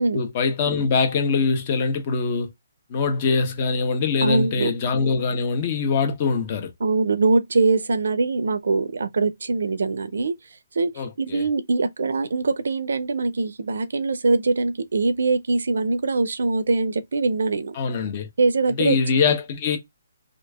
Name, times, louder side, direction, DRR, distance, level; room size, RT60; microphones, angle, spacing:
voice 1, 0.1-2.5 2.9-6.7 11.0-11.4 17.7-18.3 18.8-19.8, left 5 dB, 40° left, 1.1 m, -23 dB
voice 2, 4.2-4.7 6.8-10.4 10.7-17.8 18.4-19.0, right 3 dB, 75° right, 0.6 m, -22 dB
3.0 x 2.5 x 3.4 m
hypercardioid pair, 150°, 0 cm